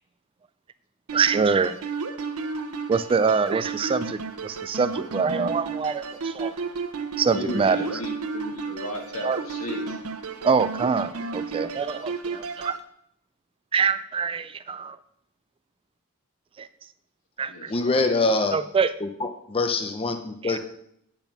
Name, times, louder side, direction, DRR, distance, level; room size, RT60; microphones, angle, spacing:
voice 1, 1.1-1.7 2.9-6.5 7.2-7.9 9.2-9.4 10.4-12.8 13.7-15.0 16.6-16.7 17.4-17.7 18.5-18.9 20.4-20.6, right 5 dB, 25° right, 14 dB, 0.3 m, -24 dB
sound 1, 1.1-12.8, right 4 dB, 85° right, 0.8 m, -33 dB
voice 2, 7.3-10.0 17.5-18.2, left 1 dB, 70° left, 2 dB, 1.8 m, -35 dB
voice 3, 17.7-18.6 19.0-20.6, left 3 dB, 25° left, 6 dB, 0.6 m, -24 dB
9.0 x 5.3 x 5.9 m, 0.72 s
head